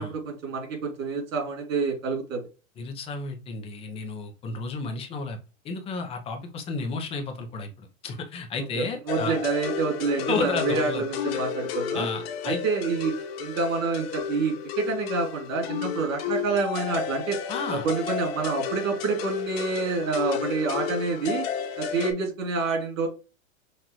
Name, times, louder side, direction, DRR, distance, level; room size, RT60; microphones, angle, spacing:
voice 1, 0.0-2.4 8.7-12.1 12.4-17.4 17.7-21.5 21.8-23.1, right 4 dB, 70° right, 2 dB, 2.6 m, -28 dB
voice 2, 2.8-5.4 5.6-9.4 10.3-11.0 11.3-11.4 11.9-12.6 17.5-17.9, left 4 dB, 15° left, 5 dB, 0.5 m, -32 dB
sound 1, 9.1-22.1, left 8 dB, 50° left, 1.0 m, -32 dB
5.9 x 2.5 x 3.0 m, 0.31 s
hypercardioid pair, 140°, 41 cm